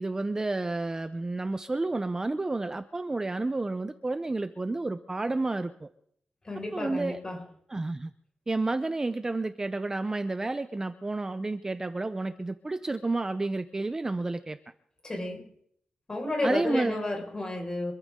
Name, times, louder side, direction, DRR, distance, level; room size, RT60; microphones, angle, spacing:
voice 1, 0.0-5.9 6.7-7.2 7.7-8.1 8.5-14.6 16.4-17.0, right 2 dB, 20° right, 10 dB, 0.7 m, -30 dB
voice 2, 6.4-7.4 15.0-15.5 16.1-17.9, left 1 dB, 25° left, 1 dB, 5.3 m, -31 dB
25.5 x 14.5 x 3.7 m, 0.67 s
wide cardioid pair, 155°, 3 cm